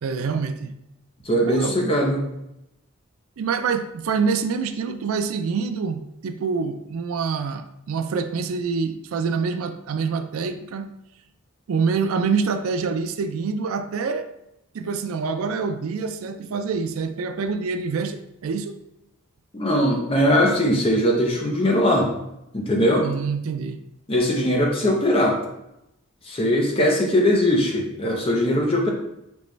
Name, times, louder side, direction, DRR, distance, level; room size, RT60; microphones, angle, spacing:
voice 1, 0.0-0.7 1.5-1.8 3.4-10.9 11.7-14.3 14.7-18.8 23.0-23.8, right 5 dB, 80° right, 9 dB, 0.4 m, -26 dB
voice 2, 1.3-2.3 19.5-22.1 22.5-23.1 24.1-25.4 26.3-28.9, equal, 25° left, 0 dB, 0.7 m, -20 dB
5.3 x 3.0 x 3.2 m, 0.86 s
head